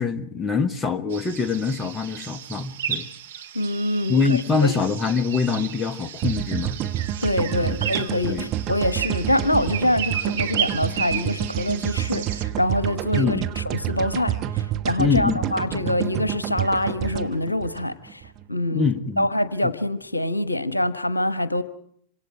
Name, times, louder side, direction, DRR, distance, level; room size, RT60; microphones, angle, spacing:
voice 1, 0.0-3.1 4.1-6.8 7.6-7.7 8.3-8.5 13.1-13.5 15.0-15.8 18.7-19.3, left 5 dB, 15° left, 9 dB, 1.2 m, -24 dB
sound 1, 1.1-12.4, right 9 dB, 60° right, 1.6 m, -33 dB
voice 2, 3.5-4.7 7.2-18.2 18.5-18.9 19.2-21.6, left 1 dB, 85° left, 13 dB, 1.0 m, -25 dB
sound 2, 6.2-18.4, right 12 dB, 35° right, 1.1 m, -28 dB
27.0 x 26.0 x 4.7 m, 0.63 s
figure-of-eight pair, 90°, 0 cm